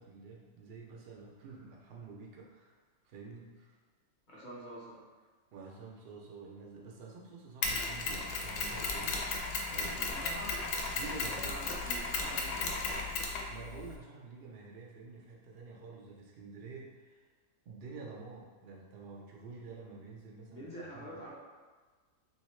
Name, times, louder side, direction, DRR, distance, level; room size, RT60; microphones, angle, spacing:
voice 1, 0.0-2.8 3.0-3.7 5.5-9.4 9.7-10.2 10.9-11.6 13.5-17.3 17.7-21.2, right 4 dB, 75° right, -2 dB, 0.5 m, -49 dB
voice 2, 4.3-5.0 9.9-10.6 11.2-13.3 20.5-21.3, right 1 dB, 40° left, -7 dB, 0.7 m, -47 dB
Mechanisms, 7.6-14.0, left 3 dB, 80° left, 1.1 m, -35 dB
3.1 x 2.8 x 3.1 m, 1.4 s
omnidirectional pair, 1.6 m